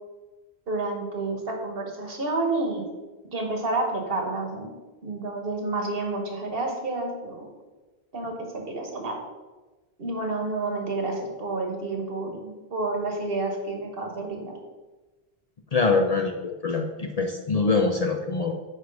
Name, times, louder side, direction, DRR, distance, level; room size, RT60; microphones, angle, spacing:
voice 1, 0.7-2.8 3.3-4.7 5.0-7.5 8.1-9.2 10.0-14.6, right 2 dB, 65° right, 2 dB, 1.4 m, -29 dB
voice 2, 15.7-16.3 16.6-18.5, left 4 dB, 45° left, 3 dB, 0.6 m, -23 dB
9.5 x 3.2 x 5.2 m, 1.2 s
omnidirectional pair, 1.1 m